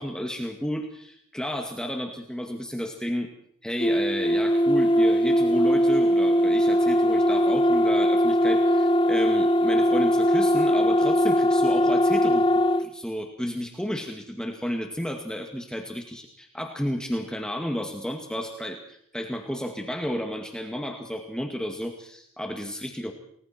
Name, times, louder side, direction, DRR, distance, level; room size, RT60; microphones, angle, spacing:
voice 1, 0.0-3.3 3.6-12.5 12.8-23.1, equal, 5° left, 3 dB, 2.1 m, -32 dB
sound 1, 3.8-12.9, equal, 25° left, 0.9 m, -21 dB
29.0 x 21.0 x 4.5 m, 0.69 s
head